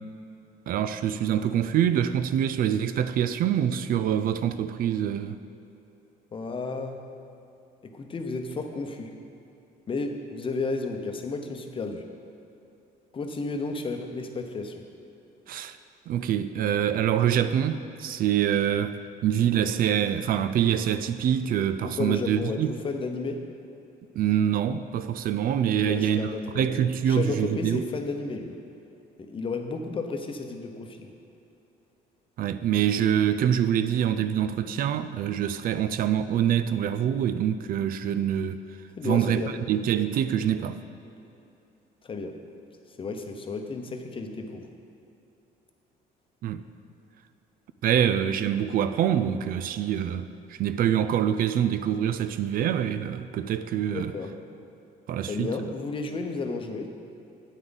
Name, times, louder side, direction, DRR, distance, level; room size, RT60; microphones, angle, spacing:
voice 1, 0.7-5.4 15.5-15.8 16.1-22.7 24.2-27.9 32.4-38.6 39.0-40.8 46.4-46.6 47.8-54.1 55.1-55.5, right 9 dB, 60° right, 0.4 m, -25 dB
voice 2, 6.3-7.0 7.8-9.1 9.9-12.0 13.1-14.8 21.8-23.4 25.7-28.6 29.2-31.1 39.0-39.6 42.1-42.4 43.0-44.7 53.9-54.4 55.3-56.9, left 3 dB, 30° left, 0.8 m, -32 dB
9.4 x 9.2 x 4.0 m
cardioid pair, 110°, 17 cm